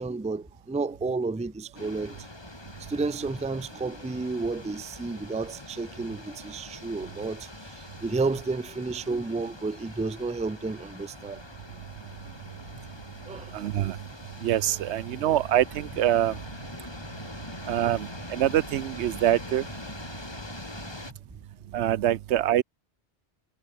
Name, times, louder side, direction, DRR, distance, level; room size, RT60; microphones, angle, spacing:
voice 1, 0.0-2.3 2.9-11.4 12.2-12.3 13.3-13.5, right 3 dB, 10° right, 0.4 m, -31 dB
sound 1, 1.7-21.1, left 1 dB, 25° left, 2.4 m, -43 dB
voice 2, 13.5-14.0 14.4-16.4 17.7-19.7 21.7-22.6, right 12 dB, 85° right, 0.9 m, -25 dB
omnidirectional pair, 1.1 m